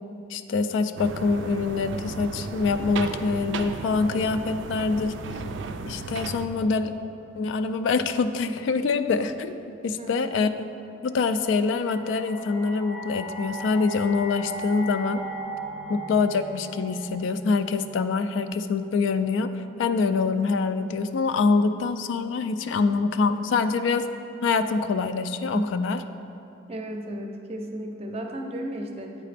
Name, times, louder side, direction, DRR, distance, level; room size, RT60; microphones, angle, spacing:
voice 1, 0.3-5.1 5.8-6.9 7.4-10.5 11.0-15.2 15.9-24.0 24.4-26.0, left 4 dB, 85° left, 10 dB, 0.3 m, -25 dB
sound 1, 1.0-6.5, right 4 dB, 90° right, 0.4 m, -34 dB
voice 2, 10.0-10.5 25.5-25.7 26.7-29.2, right 1 dB, 35° right, 3 dB, 0.5 m, -34 dB
sound 2, 11.3-18.4, right 1 dB, 25° left, 0.6 m, -38 dB
8.2 x 4.8 x 3.3 m, 2.8 s
head